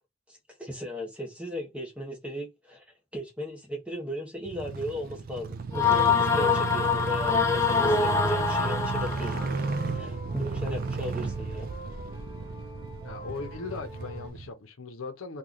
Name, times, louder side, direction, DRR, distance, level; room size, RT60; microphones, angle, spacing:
voice 1, 0.3-2.8 3.1-9.7 9.9-11.7, equal, 5° right, 1.1 m, -36 dB
sound 1, 4.5-14.5, right 4 dB, 45° right, 0.4 m, -34 dB
sound 2, 5.7-9.5, left 5 dB, 15° left, 0.5 m, -24 dB
sound 3, 9.2-14.3, right 1 dB, 25° right, 1.4 m, -45 dB
voice 2, 13.0-15.4, left 4 dB, 80° left, 0.8 m, -38 dB
3.0 x 2.4 x 3.8 m
head